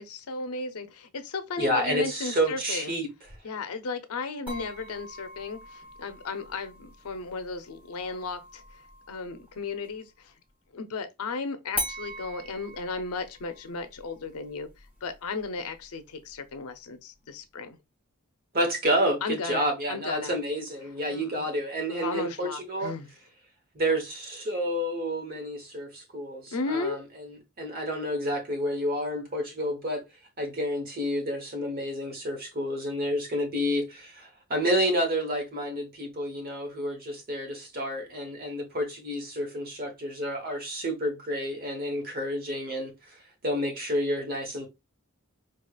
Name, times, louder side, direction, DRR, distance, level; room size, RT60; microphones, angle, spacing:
voice 1, 0.0-3.0 3.4-8.6 9.1-10.3 10.7-14.7 15.0-17.8 19.2-20.3 21.1-21.5 21.9-23.1 26.5-27.0, left 4 dB, 90° left, 0.6 m, -35 dB
voice 2, 1.6-3.1 18.5-22.9 23.7-30.0 30.4-43.2 43.4-44.7, equal, 45° right, 1.0 m, -29 dB
sound 1, 4.5-10.1 11.7-16.7, equal, 5° right, 1.0 m, -42 dB
4.7 x 2.4 x 2.3 m
head